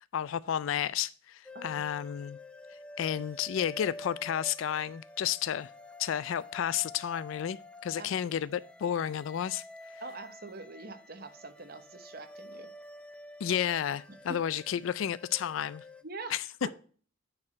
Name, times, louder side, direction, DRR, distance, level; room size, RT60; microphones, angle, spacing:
voice 1, 0.0-2.4 3.0-5.7 6.0-9.6 9.9-10.0 13.4-15.8 16.3-16.4, left 9 dB, 80° left, 0.3 m, -32 dB
sound 1, 1.5-16.0, left 2 dB, 5° left, 0.4 m, -49 dB
voice 2, 1.5-1.9 8.0-8.4 10.0-12.7 14.3-14.4 16.0-16.4 16.6-16.7, right 3 dB, 50° right, 1.0 m, -44 dB
9.6 x 4.7 x 4.3 m
head